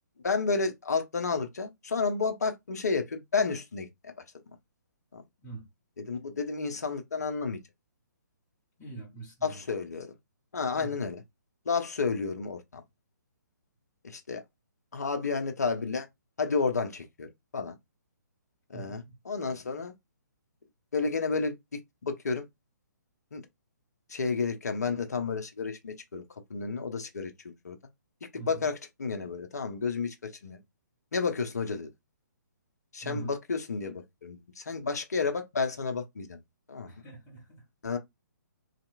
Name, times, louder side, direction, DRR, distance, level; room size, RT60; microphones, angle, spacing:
voice 1, 0.2-4.1 5.1-5.2 6.0-7.6 9.4-10.1 10.5-11.2 11.7-12.8 14.0-14.4 14.9-16.1 16.4-17.8 18.7-19.9 20.9-22.5 23.3-23.4 24.1-26.2 26.5-27.8 28.5-30.1 30.4-30.6 31.1-31.9 32.9-36.4 36.7-36.9 37.8-38.0, left 4 dB, 60° left, 0.7 m, -31 dB
voice 2, 8.8-9.6 10.7-11.1 18.7-19.1 28.3-28.7 33.0-33.3 36.8-37.6, right 4 dB, 15° left, 1.4 m, -43 dB
3.2 x 2.8 x 2.5 m
figure-of-eight pair, 130°, 10 cm